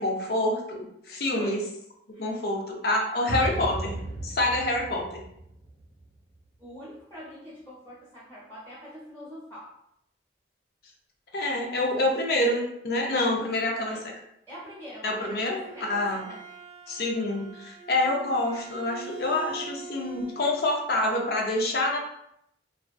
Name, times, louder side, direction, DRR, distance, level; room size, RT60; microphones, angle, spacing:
voice 1, 0.0-1.6 2.2-5.2 11.3-14.1 15.0-16.2 16.9-22.0, left 1 dB, 55° left, 1 dB, 0.5 m, -27 dB
sound 1, 3.3-6.5, right 2 dB, 70° right, 0.6 m, -35 dB
voice 2, 6.6-9.7 13.3-13.5 13.8-14.0 14.5-16.4, equal, 15° left, -10 dB, 0.9 m, -45 dB
Bowed string instrument, 15.2-20.7, right 5 dB, 20° right, 0.6 m, -44 dB
2.4 x 2.3 x 2.2 m, 0.75 s
head